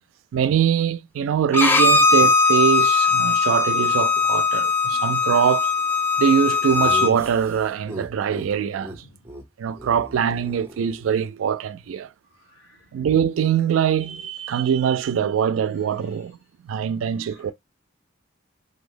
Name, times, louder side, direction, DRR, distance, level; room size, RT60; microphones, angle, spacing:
voice 1, 0.3-5.7 6.2-8.9 9.6-12.1 12.9-16.4 16.6-17.5, right 8 dB, 80° right, 0.3 m, -23 dB
Bowed string instrument, 1.5-7.1, left 4 dB, 10° left, 0.3 m, -19 dB
Laughter, 6.7-8.5 8.8-9.0 9.2-9.4 9.7-11.3, right 1 dB, 15° right, 0.8 m, -37 dB
voice 2, 8.9-9.3 12.3-12.9 16.0-16.2 16.8-16.9 17.2-17.5, left 2 dB, 80° left, 1.5 m, -55 dB
3.2 x 2.0 x 3.7 m
head